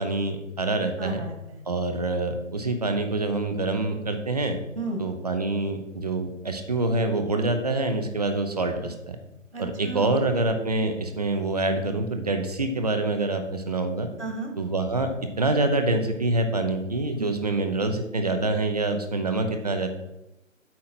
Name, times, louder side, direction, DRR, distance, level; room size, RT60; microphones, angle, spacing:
voice 1, 0.0-1.2 1.7-4.6 5.0-9.2 9.6-14.1 14.6-15.1 15.4-19.9, right 2 dB, 30° right, 6 dB, 0.6 m, -26 dB
voice 2, 1.0-1.6 4.8-5.0 9.5-10.2 14.2-14.5 17.2-17.3, right 2 dB, 60° right, 3 dB, 1.9 m, -33 dB
8.6 x 3.7 x 5.8 m, 0.90 s
figure-of-eight pair, 140°, 39 cm